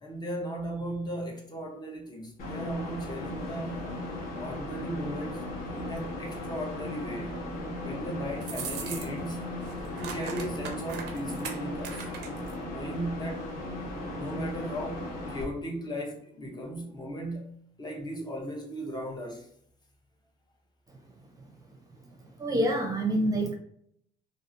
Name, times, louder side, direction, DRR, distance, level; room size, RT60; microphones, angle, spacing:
voice 1, 0.0-3.9 4.4-7.4 7.8-9.5 10.0-12.1 12.6-13.5 14.1-19.5, equal, 25° left, 0.7 m, -37 dB
sound 1, 2.4-15.4, left 1 dB, 60° left, 1.0 m, -37 dB
sound 2, 8.4-9.3 9.6-12.5, right 7 dB, 90° right, 0.5 m, -39 dB
voice 2, 22.2-23.5, right 1 dB, 20° right, 0.6 m, -27 dB
2.6 x 2.4 x 2.5 m
cardioid pair, 110°, 17 cm